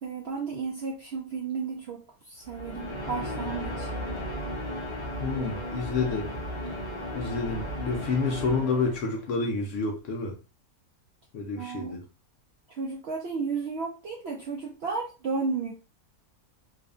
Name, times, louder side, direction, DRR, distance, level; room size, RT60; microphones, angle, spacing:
voice 1, 0.0-3.9 11.6-12.0 12.8-15.7, right 4 dB, 70° right, -1 dB, 0.6 m, -33 dB
sound 1, 2.4-9.3, equal, 50° left, 0.3 m, -35 dB
voice 2, 5.2-6.3 7.1-10.4 11.3-12.0, left 4 dB, 65° left, 2 dB, 0.8 m, -29 dB
2.7 x 2.4 x 2.3 m, 0.32 s
omnidirectional pair, 1.6 m